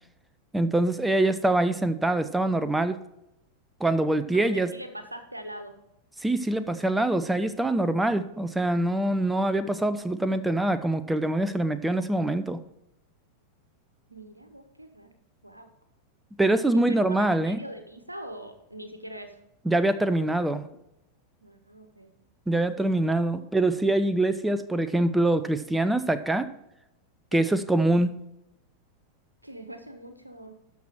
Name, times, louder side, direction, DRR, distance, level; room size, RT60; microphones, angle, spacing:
voice 1, 0.5-3.0 3.8-4.7 6.2-12.6 16.4-17.6 19.7-20.7 22.5-26.5 27.3-28.2, right 1 dB, 5° right, 12 dB, 0.6 m, -24 dB
voice 2, 4.3-5.7 6.6-6.7 14.1-15.1 15.4-15.7 16.7-19.4 21.4-22.1 27.3-27.5 29.4-30.6, right 1 dB, 85° right, 8 dB, 1.2 m, -42 dB
12.5 x 6.0 x 4.5 m, 0.88 s
figure-of-eight pair, 90°, 0 cm